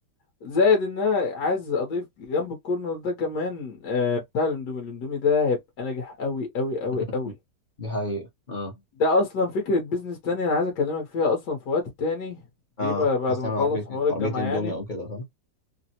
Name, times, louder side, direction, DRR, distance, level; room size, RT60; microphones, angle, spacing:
voice 1, 0.4-7.3 9.0-12.4 12.8-14.7, left 4 dB, 65° left, 1.4 m, -25 dB
voice 2, 7.8-8.7 12.8-15.2, left 1 dB, 40° left, 0.7 m, -30 dB
3.3 x 2.0 x 2.8 m
omnidirectional pair, 2.0 m